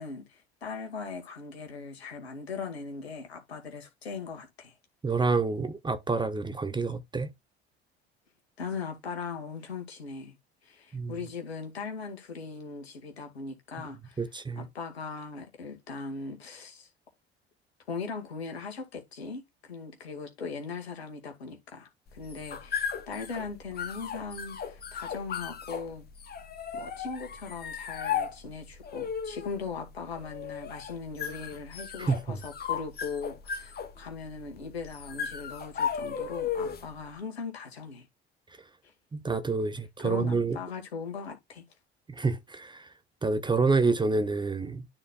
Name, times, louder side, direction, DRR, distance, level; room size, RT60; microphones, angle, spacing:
voice 1, 0.0-4.8 8.6-10.4 10.6-14.2 14.6-16.9 17.9-26.1 26.7-38.1 38.8-38.9 40.0-41.7, left 5 dB, 75° left, 2.1 m, -39 dB
voice 2, 5.0-7.3 10.9-11.2 14.2-14.7 32.0-32.4 39.1-40.6 42.1-42.9 43.2-44.9, right 4 dB, 15° right, 0.9 m, -28 dB
sound 1, 22.1-37.0, left 7 dB, 30° left, 1.3 m, -36 dB
12.0 x 4.3 x 2.4 m
figure-of-eight pair, 65°, 32 cm